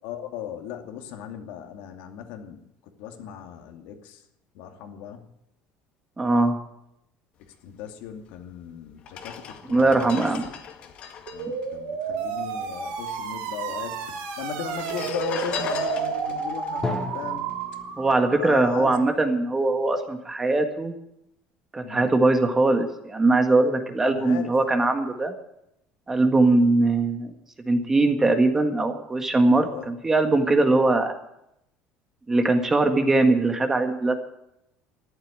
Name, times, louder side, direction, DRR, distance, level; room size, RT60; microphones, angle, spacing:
voice 1, 0.0-4.2 4.5-5.3 7.6-10.3 11.3-16.9 17.1-17.5 18.3-19.0 21.8-22.1 24.1-24.5 29.5-29.9, left 9 dB, 75° left, 4 dB, 2.5 m, -37 dB
voice 2, 6.2-6.6 9.7-10.5 18.0-20.9 21.7-25.3 26.1-27.4 27.7-31.2 32.3-34.2, right 2 dB, 15° right, 6 dB, 1.8 m, -21 dB
sound 1, 8.3-8.4 9.0-12.7 12.9-13.0 13.2-13.9 14.6-18.1 18.5-18.7, left 7 dB, 45° left, 2.1 m, -38 dB
sound 2, 11.3-18.7, right 6 dB, 85° right, 3.8 m, -31 dB
Drum, 16.8-20.5, left 2 dB, 15° left, 2.5 m, -36 dB
14.0 x 11.5 x 8.9 m, 0.79 s
cardioid pair, 150°, 3 cm